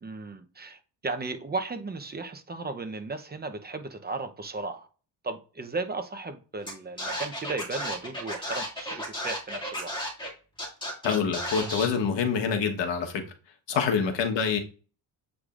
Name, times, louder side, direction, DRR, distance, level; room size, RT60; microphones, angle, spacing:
voice 1, 0.0-4.9 5.2-9.9 13.7-13.9, right 3 dB, 20° right, 0.7 m, -35 dB
Scratching (performance technique), 6.7-6.8 7.0-10.3 10.6-11.9, equal, 10° left, 2.2 m, -33 dB
voice 2, 11.0-13.2 13.7-14.6, left 6 dB, 75° left, 1.3 m, -26 dB
8.0 x 4.9 x 2.5 m
cardioid pair, 110°, 44 cm